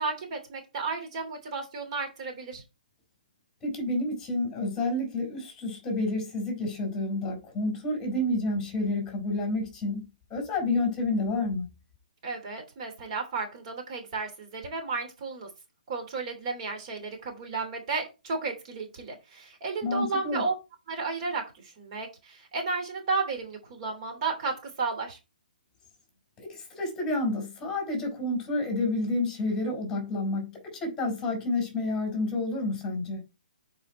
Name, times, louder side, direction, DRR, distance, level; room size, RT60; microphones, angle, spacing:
voice 1, 0.0-2.6 12.2-15.5 15.9-20.5 20.9-25.2, right 4 dB, 40° right, 3.0 m, -33 dB
voice 2, 3.6-10.0 10.3-11.7 19.8-20.4 26.4-33.2, left 2 dB, 15° left, 4.4 m, -29 dB
8.9 x 4.9 x 4.3 m
hypercardioid pair, 145°, 5 cm